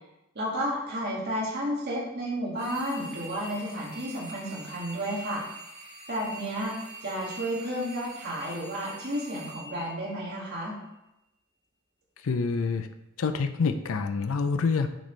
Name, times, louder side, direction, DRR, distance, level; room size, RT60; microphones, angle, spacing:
voice 1, 0.4-5.4 6.1-6.7 7.0-10.8, equal, 55° right, -4 dB, 2.0 m, -32 dB
sound 1, 2.6-10.7, right 3 dB, 70° right, 2.2 m, -45 dB
voice 2, 12.2-12.9 13.2-14.9, left 4 dB, 85° left, 8 dB, 0.5 m, -27 dB
9.1 x 4.2 x 3.3 m, 0.90 s
head